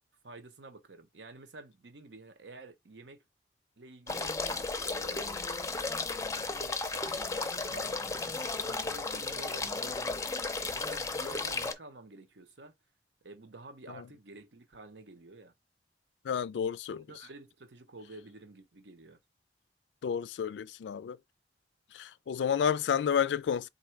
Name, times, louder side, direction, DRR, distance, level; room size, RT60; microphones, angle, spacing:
voice 1, 0.2-3.2 3.8-4.4 4.8-5.4 6.0-10.3 10.6-12.7 13.2-15.5 16.9-19.2, right 2 dB, 85° right, 0.9 m, -50 dB
sound 1, 4.1-11.7, left 3 dB, 20° left, 0.5 m, -34 dB
voice 2, 16.2-17.0 20.0-21.2 21.9-23.7, left 7 dB, 80° left, 0.3 m, -30 dB
3.6 x 2.6 x 4.4 m
head